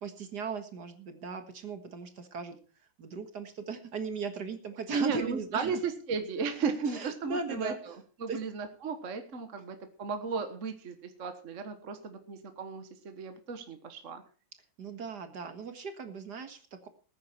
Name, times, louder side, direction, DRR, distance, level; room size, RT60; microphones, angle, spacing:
voice 1, 0.0-2.6 3.0-5.8 6.9-7.9 8.3-8.4 14.8-16.9, right 5 dB, 60° right, 8 dB, 2.2 m, -38 dB
voice 2, 4.9-14.2, right 5 dB, 45° right, 7 dB, 1.6 m, -35 dB
19.0 x 9.6 x 4.4 m, 0.38 s
omnidirectional pair, 2.1 m